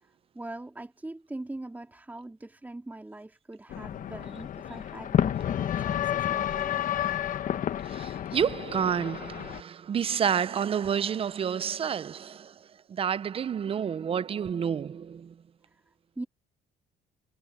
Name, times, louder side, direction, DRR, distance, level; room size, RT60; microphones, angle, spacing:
voice 1, 0.0-6.9 15.7-16.2, right 2 dB, 10° right, 2.6 m, -42 dB
sound 1, 3.7-9.6, left 10 dB, 50° left, 1.2 m, -30 dB
voice 2, 7.9-12.5 12.9-15.3, right 8 dB, 35° right, 0.6 m, -29 dB
cardioid pair, 110°, 17 cm